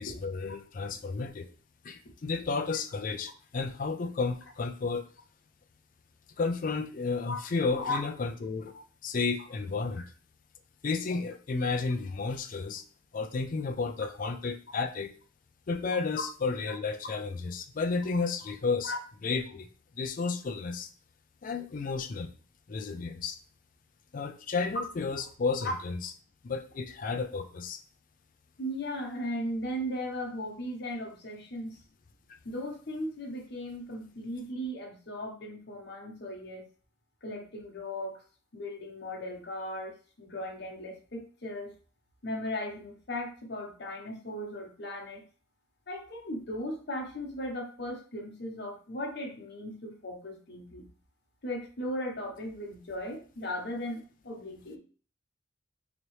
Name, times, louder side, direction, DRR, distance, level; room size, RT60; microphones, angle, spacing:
voice 1, 0.0-1.5 1.8-5.1 6.4-8.7 9.0-10.1 10.8-12.8 13.1-15.1 15.7-18.9 19.2-19.7 20.0-20.9 21.4-22.3 22.7-23.4 24.1-26.0 26.4-27.8, left 4 dB, 45° left, 7 dB, 0.4 m, -32 dB
voice 2, 28.6-31.8 32.4-36.6 37.2-38.2 38.5-41.7 42.2-45.2 45.9-50.9 51.4-54.8, left 1 dB, 60° left, 1 dB, 1.0 m, -37 dB
3.9 x 3.0 x 3.1 m, 0.40 s
head